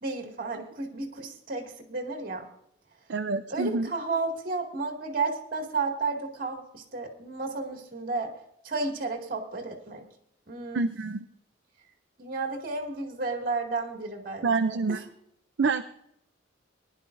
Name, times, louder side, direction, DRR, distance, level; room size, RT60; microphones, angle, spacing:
voice 1, 0.0-2.5 3.5-8.3 8.6-10.1 10.5-10.9 12.2-15.0, right 3 dB, 50° right, 2 dB, 2.2 m, -32 dB
voice 2, 3.1-3.9 10.7-11.2 14.4-15.1 15.6-15.8, right 4 dB, 70° right, 7 dB, 0.5 m, -27 dB
20.5 x 11.0 x 2.6 m, 0.76 s
head